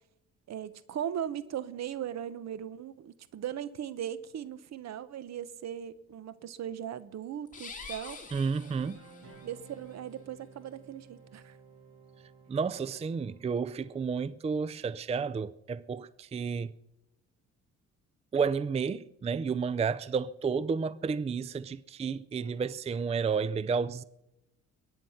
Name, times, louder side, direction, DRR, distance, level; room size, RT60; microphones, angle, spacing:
voice 1, 0.5-8.2 9.4-11.6, right 10 dB, 60° right, 0.9 m, -38 dB
sound 1, 7.5-9.5, left 4 dB, 25° left, 2.9 m, -46 dB
voice 2, 8.3-9.0 12.5-16.7 18.3-24.0, right 5 dB, 20° right, 0.4 m, -31 dB
sound 2, 8.6-14.5, right 4 dB, 45° right, 4.5 m, -55 dB
22.5 x 9.2 x 5.7 m
cardioid pair, 90°, 30 cm